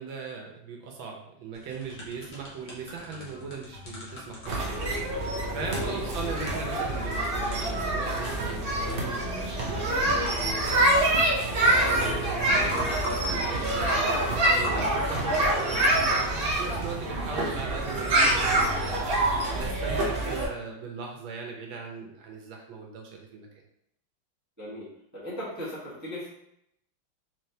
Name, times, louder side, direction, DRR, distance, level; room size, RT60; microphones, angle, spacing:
voice 1, 0.0-4.7 5.1-10.9 11.6-19.0 19.5-23.5, right 4 dB, 90° right, 0 dB, 1.6 m, -39 dB
sound 1, 1.5-16.1, equal, 45° left, 1.0 m, -41 dB
sound 2, 3.1-19.5, left 3 dB, 75° left, 0.5 m, -44 dB
sound 3, 4.5-20.5, right 1 dB, 65° right, 0.5 m, -26 dB
voice 2, 25.1-26.3, left 1 dB, 10° right, -10 dB, 1.1 m, -37 dB
4.0 x 3.2 x 2.8 m, 0.76 s
omnidirectional pair, 2.1 m